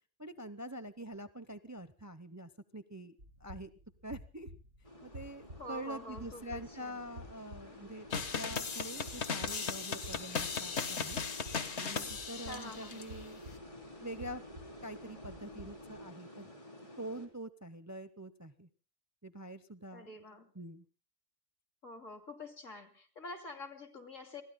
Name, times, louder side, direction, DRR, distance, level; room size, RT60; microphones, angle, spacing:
voice 1, 0.2-3.7 4.0-4.5 5.0-11.2 11.7-13.4 14.0-14.4 14.8-16.5 17.0-18.7 19.2-20.2 20.5-20.8, right 1 dB, 15° right, 12 dB, 0.7 m, -45 dB
sound 1, 3.2-16.0, equal, 70° right, 8.3 m, -53 dB
sound 2, 4.8-17.3, left 1 dB, 25° left, 3.6 m, -51 dB
voice 2, 5.6-7.0 12.5-12.9 19.9-20.5 21.8-24.4, left 1 dB, 85° left, 5 dB, 3.1 m, -47 dB
sound 3, 8.1-13.0, left 5 dB, 60° left, 1.6 m, -37 dB
28.5 x 22.5 x 2.2 m, 0.35 s
omnidirectional pair, 1.3 m